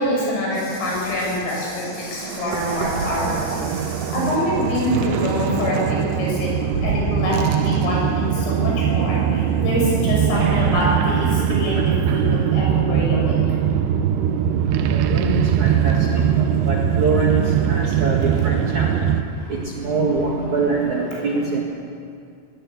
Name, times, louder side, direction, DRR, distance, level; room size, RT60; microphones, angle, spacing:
voice 1, 0.0-6.5 6.8-13.6, left 1 dB, 70° left, -3 dB, 9.0 m, -25 dB
sound 1, 2.1-19.2, right 9 dB, 80° right, 2.4 m, -21 dB
voice 2, 14.9-16.2 16.7-17.4 17.7-18.9 19.8-21.6, right 3 dB, 55° right, -2 dB, 2.3 m, -24 dB
20.0 x 18.5 x 8.5 m, 2.4 s
omnidirectional pair, 6.0 m